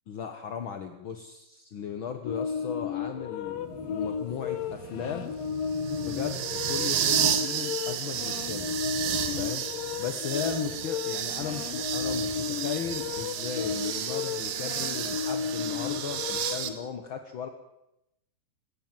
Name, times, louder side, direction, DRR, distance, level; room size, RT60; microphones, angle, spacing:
voice 1, 0.1-5.3 6.0-8.7 9.3-9.6 10.0-17.5, left 7 dB, 60° left, 7 dB, 1.3 m, -37 dB
sound 1, 2.3-16.8, left 7 dB, 80° left, 2.8 m, -33 dB
sound 2, 3.6-16.7, right 9 dB, 85° right, 3.2 m, -32 dB
21.0 x 18.0 x 7.5 m, 0.85 s
omnidirectional pair, 4.0 m